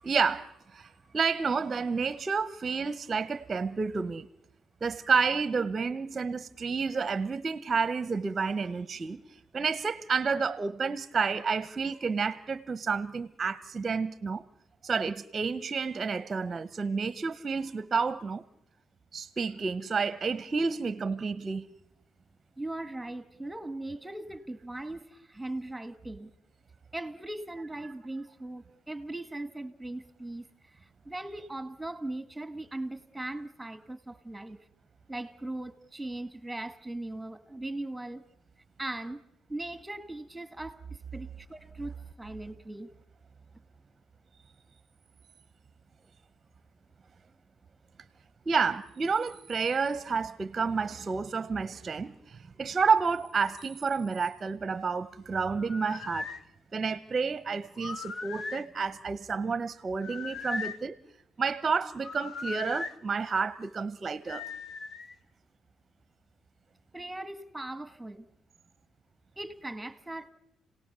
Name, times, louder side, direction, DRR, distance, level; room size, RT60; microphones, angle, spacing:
voice 1, 0.0-4.3 4.8-9.2 9.5-14.4 14.8-18.4 19.1-21.7 48.5-56.3 56.7-61.0 61.4-64.4, right 5 dB, 30° right, 0.8 m, -30 dB
voice 2, 22.6-26.3 26.9-34.6 35.1-38.3 38.8-39.2 39.5-42.9 66.9-68.3 69.4-70.3, right 2 dB, 5° right, 1.7 m, -39 dB
sound 1, 55.6-56.4 57.8-58.7 60.0-60.9 62.0-63.0 64.3-65.1, left 4 dB, 50° left, 1.0 m, -38 dB
30.0 x 18.0 x 6.8 m
cardioid pair, 90°, 0 cm